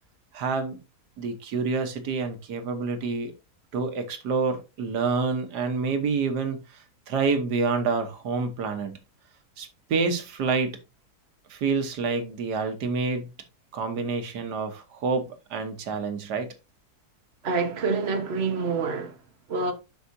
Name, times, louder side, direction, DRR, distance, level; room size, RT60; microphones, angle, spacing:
voice 1, 0.3-0.8 1.2-3.3 3.7-9.0 9.6-10.8 11.5-13.3 13.7-16.5, right 4 dB, 90° right, 1.8 m, -28 dB
voice 2, 17.4-19.1 19.5-19.7, right 4 dB, 45° right, 1.4 m, -26 dB
11.5 x 4.8 x 2.7 m
omnidirectional pair, 1.7 m